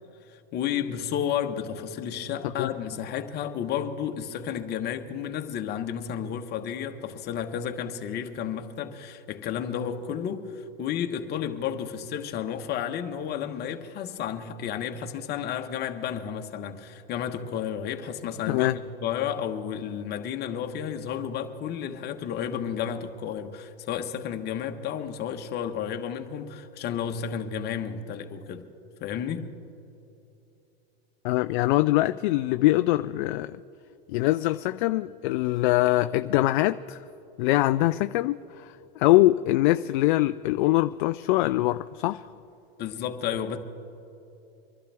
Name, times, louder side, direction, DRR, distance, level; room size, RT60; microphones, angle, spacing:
voice 1, 0.3-28.7 29.0-29.5 42.8-43.6, left 8 dB, 30° left, 1.2 m, -32 dB
voice 2, 18.5-18.8 31.2-33.6 34.1-37.0 37.4-42.2, left 17 dB, 55° left, 0.5 m, -23 dB
25.0 x 12.0 x 3.5 m
hypercardioid pair, 120°, 31 cm